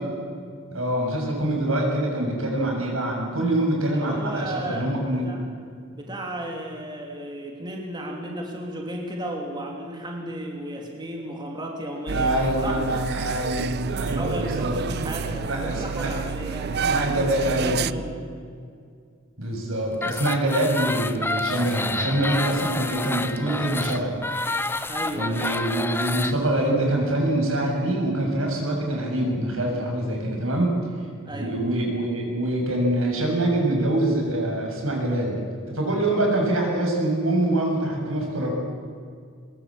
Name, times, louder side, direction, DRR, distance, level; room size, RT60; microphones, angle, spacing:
voice 1, 0.7-5.2 12.1-16.1 16.6-17.8 19.4-24.1 25.1-30.7 31.3-35.4 35.7-38.5, right 1 dB, 85° right, 0 dB, 7.3 m, -25 dB
voice 2, 3.9-5.4 5.9-12.8 14.0-17.3 17.6-18.2 24.9-25.5 31.2-31.6, right 1 dB, 20° right, 0 dB, 2.9 m, -34 dB
sound 1, 12.1-17.9, right 6 dB, 50° right, 0.5 m, -29 dB
sound 2, 19.9-26.3, left 2 dB, 10° left, 0.8 m, -29 dB
23.0 x 22.0 x 7.6 m, 2.2 s
head